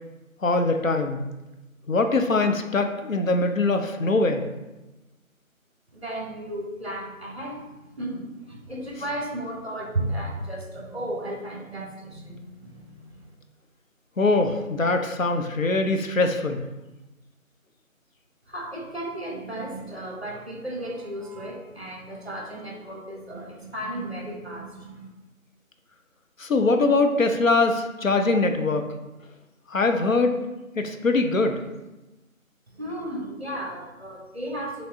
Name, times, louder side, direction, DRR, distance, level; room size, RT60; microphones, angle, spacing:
voice 1, 0.4-1.2 1.9-4.4 14.2-16.6 26.4-28.9 29.7-30.4 30.8-31.6, left 3 dB, 70° left, 6 dB, 0.6 m, -22 dB
voice 2, 5.9-7.7 8.0-13.3 18.5-25.1 32.7-34.9, right 1 dB, 50° right, -1 dB, 1.0 m, -34 dB
5.6 x 3.2 x 2.7 m, 1.1 s
figure-of-eight pair, 170°, 42 cm